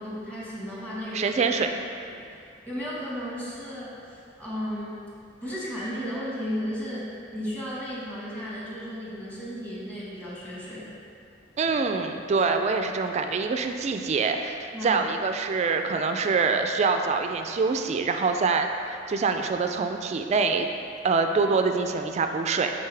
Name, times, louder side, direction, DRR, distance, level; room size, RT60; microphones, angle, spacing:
voice 1, 0.0-1.4 2.1-2.2 2.7-5.0 5.4-10.9 14.7-15.0, equal, 10° left, -8 dB, 1.5 m, -34 dB
voice 2, 1.1-1.7 11.6-20.7 21.0-22.7, right 4 dB, 35° right, 5 dB, 0.3 m, -25 dB
8.2 x 3.8 x 3.3 m, 2.5 s
head